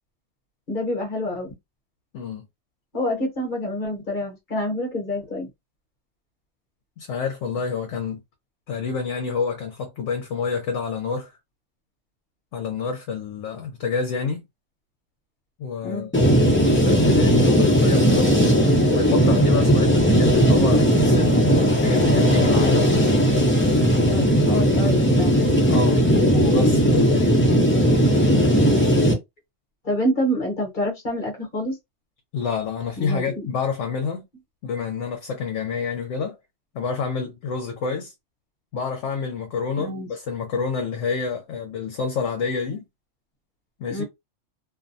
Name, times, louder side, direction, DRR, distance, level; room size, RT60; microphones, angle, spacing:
voice 1, 0.7-1.5 2.9-5.5 15.8-16.1 24.1-25.5 29.8-31.8 33.0-33.5 39.8-40.1 43.9-44.0, equal, 45° left, 1.0 m, -27 dB
voice 2, 2.1-2.4 7.0-8.2 8.7-11.3 12.5-14.4 15.6-16.1 16.7-18.3 18.9-22.9 24.2-24.9 25.7-26.0 26.3-27.4 32.3-34.2 34.6-36.4 36.7-38.1 38.7-42.8 43.8-44.0, left 5 dB, 75° left, 1.0 m, -28 dB
sound 1, 16.1-29.1, equal, 15° left, 0.6 m, -17 dB
2.6 x 2.1 x 2.6 m
omnidirectional pair, 1.3 m